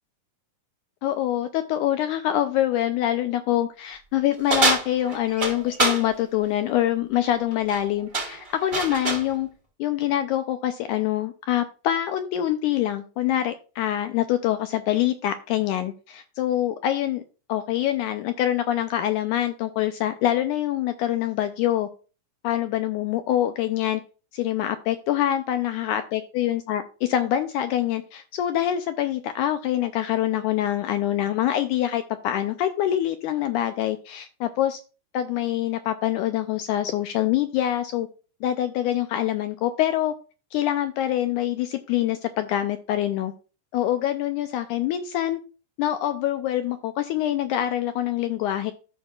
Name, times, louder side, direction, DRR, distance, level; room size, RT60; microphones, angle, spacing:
voice 1, 1.0-9.5 9.8-17.2 17.5-21.9 22.4-24.0 24.3-34.8 35.1-38.1 38.4-40.1 40.5-43.3 43.7-45.4 45.8-48.7, left 12 dB, 80° left, 8 dB, 1.8 m, -25 dB
sound 1, 4.5-6.0 7.5-7.8 8.1-9.3, right 2 dB, 75° right, 0.4 m, -25 dB
14.5 x 5.5 x 2.3 m, 0.35 s
omnidirectional pair, 3.9 m